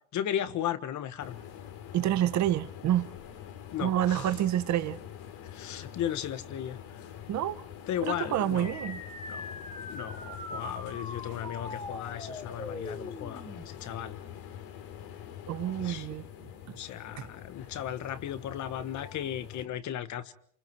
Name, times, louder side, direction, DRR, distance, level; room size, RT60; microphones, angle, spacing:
voice 1, 0.1-1.4 3.7-4.3 5.5-6.8 7.9-8.9 9.3-9.4 9.9-14.2 15.8-16.1 16.8-20.3, left 10 dB, 45° left, 1.5 m, -35 dB
sound 1, 1.2-19.7, left 9 dB, 85° left, 3.7 m, -45 dB
voice 2, 1.9-3.1 3.8-5.0 7.3-7.6 8.0-9.0 15.5-16.8 17.2-17.3, right 12 dB, 45° right, 1.4 m, -28 dB
sound 2, 8.6-13.6, left 2 dB, 15° left, 2.8 m, -41 dB
28.5 x 28.0 x 4.7 m
cardioid pair, 150°, 39 cm